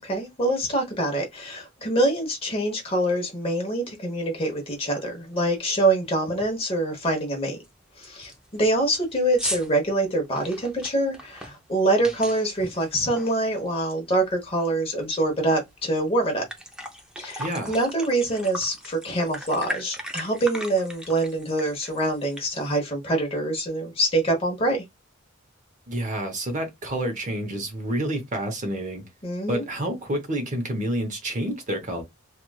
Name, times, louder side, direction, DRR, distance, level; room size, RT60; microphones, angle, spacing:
voice 1, 0.1-7.6 8.0-16.4 17.2-24.8 29.2-29.6, right 1 dB, 30° left, 0.9 m, -25 dB
sound 1, 4.7-4.8 5.2-5.5 5.8-5.9 6.3-6.6 7.0-7.1 7.6-7.7 8.0-14.0 14.3-15.6 16.0-16.1 16.3-22.8, equal, 5° right, 0.5 m, -38 dB
voice 2, 17.4-17.7 25.9-29.0 29.5-32.0, right 1 dB, 40° right, 0.8 m, -29 dB
3.0 x 2.4 x 2.3 m
head